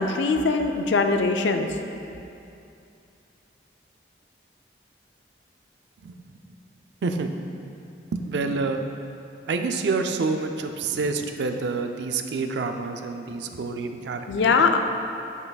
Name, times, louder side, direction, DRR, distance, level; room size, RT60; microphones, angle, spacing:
voice 1, 0.0-1.7 14.3-14.8, left 4 dB, 75° left, 6 dB, 0.4 m, -21 dB
voice 2, 8.1-8.8 9.5-14.5, right 4 dB, 70° right, 6 dB, 0.4 m, -27 dB
8.1 x 5.5 x 2.3 m, 2.6 s
head